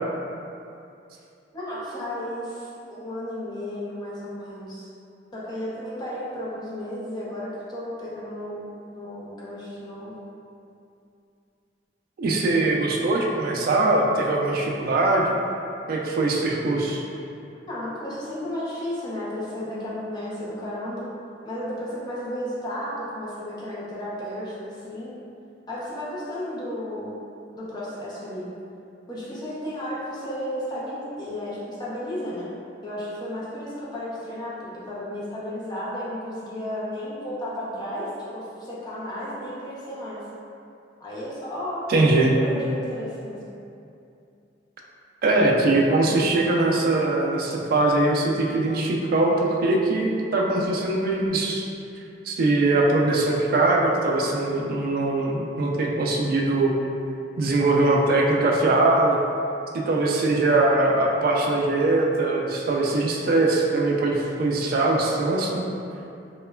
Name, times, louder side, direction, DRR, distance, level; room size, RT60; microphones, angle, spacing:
voice 1, 1.5-4.9 5.3-8.6 8.9-10.1 17.7-21.0 21.4-25.1 25.7-27.1 27.6-28.4 29.1-32.5 32.8-38.1 38.3-40.2 41.0-41.8 42.4-43.4, left 1 dB, 25° left, -8 dB, 0.5 m, -33 dB
voice 2, 12.2-15.3 15.9-17.0 41.9-42.3 45.2-51.7 52.2-56.7 57.4-59.2 59.7-65.6, right 2 dB, 55° right, -1 dB, 0.3 m, -21 dB
3.0 x 2.2 x 2.2 m, 2.6 s
head